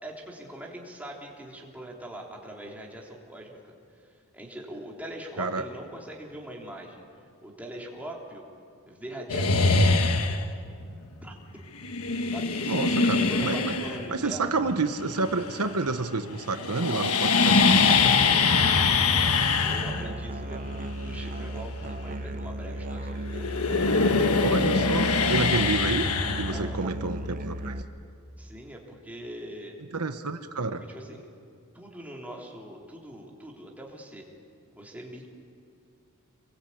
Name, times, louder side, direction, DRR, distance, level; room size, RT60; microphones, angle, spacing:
voice 1, 0.0-3.6 4.3-7.0 7.4-8.4 8.9-9.7 11.2-11.3 12.3-12.8 13.3-14.4 19.6-23.5 26.5-26.9 28.4-29.8 30.9-31.2 31.7-34.2 34.7-35.3, right 1 dB, 5° right, -1 dB, 3.6 m, -42 dB
sound 1, 9.3-10.6 11.8-16.1 16.3-23.0 23.2-27.1, left 4 dB, 70° left, 1.5 m, -23 dB
voice 2, 12.6-13.7 14.1-18.2 24.4-26.1 26.4-27.8 29.9-30.8, right 3 dB, 85° right, 8 dB, 1.2 m, -29 dB
Musical instrument, 19.9-27.8, right 1 dB, 35° right, 1.0 m, -35 dB
27.0 x 22.0 x 8.7 m, 2.4 s
head